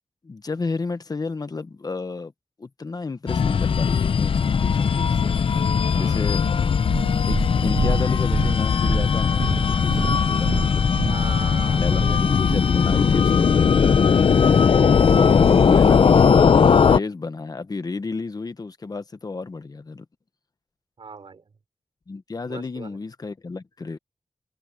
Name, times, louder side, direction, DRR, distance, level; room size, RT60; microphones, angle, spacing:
voice 1, 0.2-2.3 2.6-5.3 6.0-6.8 7.3-7.4 7.6-11.2 11.7-13.6 15.4-16.6 16.8-20.1 22.1-24.0, left 3 dB, 45° left, 1.1 m, -31 dB
sound 1, 3.3-17.0, left 6 dB, 85° left, 0.7 m, -19 dB
voice 2, 5.9-6.3 11.0-12.2 15.8-15.9 21.0-21.5 22.4-23.0, right 5 dB, 75° right, 5.0 m, -38 dB
Purr, 6.8-13.1 13.9-14.0, right 5 dB, 50° right, 0.3 m, -30 dB
wide cardioid pair, 115°, 9 cm